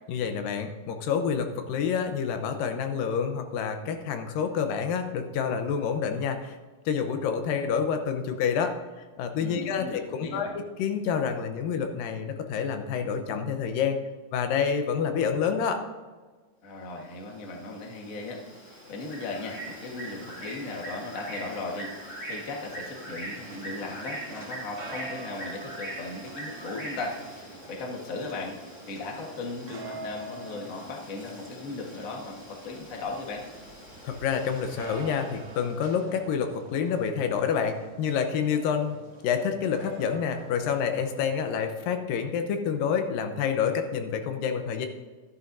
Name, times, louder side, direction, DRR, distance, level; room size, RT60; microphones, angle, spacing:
voice 1, 0.1-6.6 6.9-8.7 9.2-14.0 14.3-15.8 34.0-39.0 39.2-44.9, left 7 dB, 85° left, 6 dB, 2.6 m, -28 dB
voice 2, 9.4-10.6 16.6-28.6 28.9-33.4, left 3 dB, 60° left, 0 dB, 0.8 m, -37 dB
Bird, 17.0-35.8, right 1 dB, 25° left, 1.9 m, -43 dB
sound 1, 23.3-41.6, right 3 dB, 60° right, 1.8 m, -47 dB
12.5 x 11.0 x 2.6 m, 1.4 s
omnidirectional pair, 3.9 m